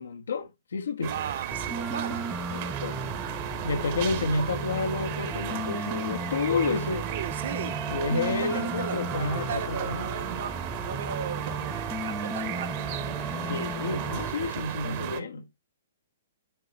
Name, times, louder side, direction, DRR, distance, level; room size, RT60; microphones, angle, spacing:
voice 1, 0.0-1.2 2.5-3.0 3.6-7.1 7.9-10.1 13.4-15.5, left 3 dB, 90° left, 1.2 m, -30 dB
sound 1, 1.0-15.2, right 12 dB, 40° right, 1.0 m, -35 dB
voice 2, 1.0-2.3 6.9-10.5 10.8-12.8 13.3-13.7, right 8 dB, 65° right, 1.1 m, -37 dB
sound 2, 1.5-14.3, right 1 dB, ahead, 0.6 m, -35 dB
9.5 x 3.2 x 4.0 m
hypercardioid pair, 155°, 0 cm